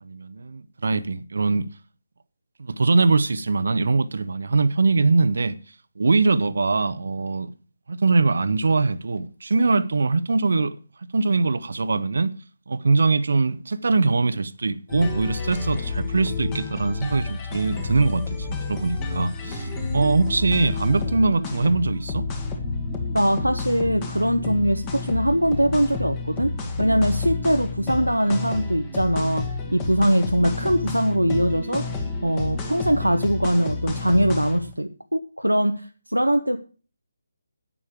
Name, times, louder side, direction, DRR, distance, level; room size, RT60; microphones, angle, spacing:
voice 1, 0.0-1.7 2.6-5.6 6.0-7.5 7.9-10.8 11.1-12.3 12.7-22.3, right 3 dB, 55° right, 0.9 m, -22 dB
sound 1, 14.9-34.7, left 4 dB, 20° left, 1.7 m, -30 dB
sound 2, 18.7-34.2, right 5 dB, 20° right, 1.5 m, -42 dB
voice 2, 23.1-26.5 26.8-29.4 29.7-31.8 32.2-36.6, equal, 85° right, 1.0 m, -22 dB
11.0 x 8.8 x 4.9 m
figure-of-eight pair, 150°, 0 cm